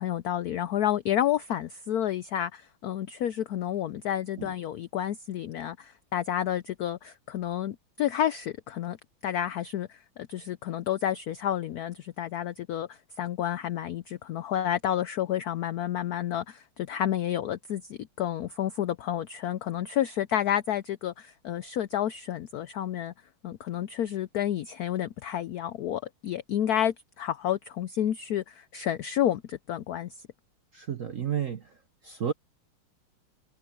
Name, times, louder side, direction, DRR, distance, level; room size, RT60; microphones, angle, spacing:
voice 1, 0.0-9.0 9.2-23.1 23.4-30.1, left 11 dB, 85° left, 0.8 m, -30 dB
voice 2, 30.7-31.7 32.0-32.3, right 8 dB, 50° right, 1.1 m, -31 dB
omnidirectional pair, 2.3 m